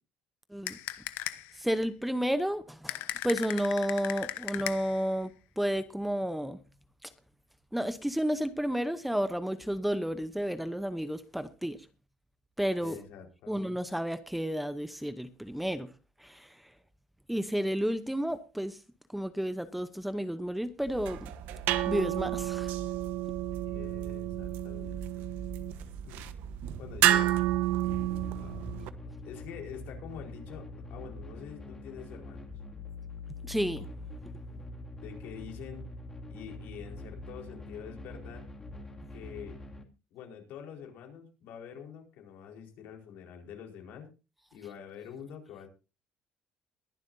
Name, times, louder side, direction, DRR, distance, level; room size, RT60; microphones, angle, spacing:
sound 1, 0.7-1.6 2.9-5.1, left 15 dB, 90° left, 1.1 m, -37 dB
voice 1, 1.6-6.6 7.0-7.1 7.7-11.8 12.6-13.0 13.5-15.9 16.2-16.6 17.3-18.8 19.1-21.2 21.9-22.7 33.4-33.9, equal, 5° right, 0.8 m, -31 dB
voice 2, 12.8-13.6 23.6-25.3 26.1-26.3 26.8-27.4 28.3-32.5 34.5-34.6 35.0-35.9 36.3-38.5 39.1-39.6 40.1-44.1 44.5-45.7, left 8 dB, 75° left, 4.5 m, -46 dB
sound 2, 20.9-28.9, right 13 dB, 80° right, 1.1 m, -30 dB
sound 3, 27.8-39.8, left 2 dB, 15° left, 2.4 m, -44 dB
21.5 x 11.5 x 2.7 m
cardioid pair, 150°, 3 cm